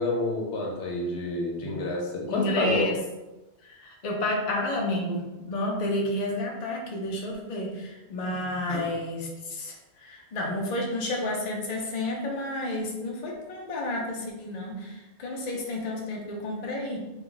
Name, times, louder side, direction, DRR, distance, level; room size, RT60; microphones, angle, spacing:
voice 1, 0.0-2.9 8.7-8.8, left 2 dB, 85° left, -1 dB, 0.9 m, -28 dB
voice 2, 2.3-3.0 3.6-17.0, left 1 dB, 50° left, -1 dB, 0.6 m, -31 dB
2.3 x 2.2 x 3.7 m, 1.1 s
omnidirectional pair, 1.1 m